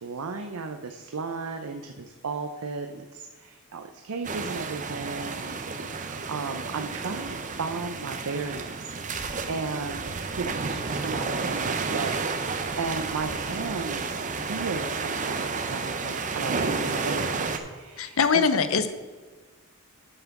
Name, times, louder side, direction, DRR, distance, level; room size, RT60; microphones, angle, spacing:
voice 1, 0.0-18.4, right 4 dB, 90° right, 5 dB, 0.6 m, -35 dB
sound 1, 4.2-17.6, right 4 dB, 35° right, 0.7 m, -31 dB
voice 2, 18.0-18.9, left 5 dB, 65° left, 11 dB, 0.7 m, -22 dB
8.9 x 5.8 x 5.9 m, 1.4 s
head